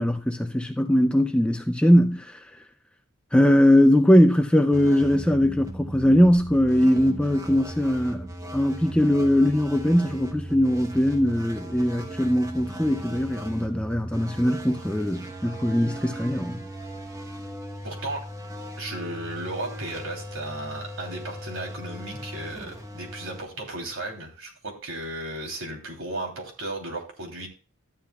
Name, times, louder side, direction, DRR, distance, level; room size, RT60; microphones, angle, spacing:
voice 1, 0.0-2.4 3.3-16.6, equal, 5° left, 0.4 m, -21 dB
sound 1, 4.7-24.3, right 1 dB, 15° right, 0.9 m, -38 dB
voice 2, 17.8-18.2 18.8-27.5, right 2 dB, 65° right, 3.0 m, -35 dB
13.0 x 10.0 x 2.3 m
head